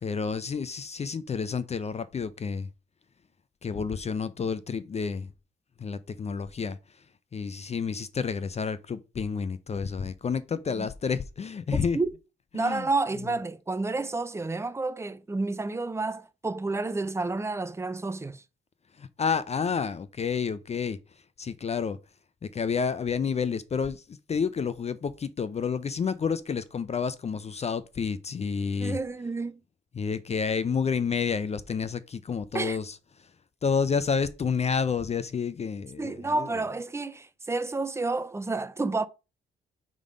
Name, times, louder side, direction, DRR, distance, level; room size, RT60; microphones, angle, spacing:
voice 1, 0.0-2.7 3.6-5.3 5.8-6.8 7.3-12.0 12.5-12.8 19.0-21.0 21.4-22.0 22.4-29.0 29.9-32.9 33.6-36.5, left 6 dB, 35° left, 0.5 m, -29 dB
voice 2, 11.7-12.1 12.5-18.4 28.8-29.6 32.5-32.8 36.0-39.1, right 3 dB, 15° right, 0.5 m, -30 dB
5.4 x 3.7 x 4.9 m
cardioid pair, 90°, 20 cm